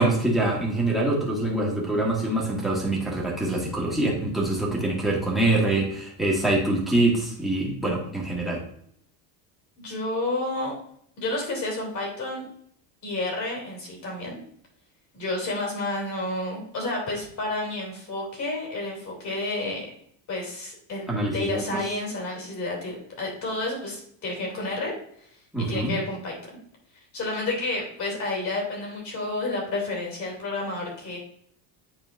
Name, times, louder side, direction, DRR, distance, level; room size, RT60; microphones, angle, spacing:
voice 1, 0.0-8.6 21.1-21.8 25.5-26.0, right 2 dB, ahead, -2 dB, 1.7 m, -24 dB
voice 2, 9.8-10.7 11.2-12.5 13.0-14.4 15.1-19.9 20.3-24.9 25.6-26.4 27.1-31.2, left 2 dB, 35° left, -1 dB, 2.9 m, -30 dB
9.9 x 4.3 x 2.6 m, 0.66 s
cardioid pair, 165°, 48 cm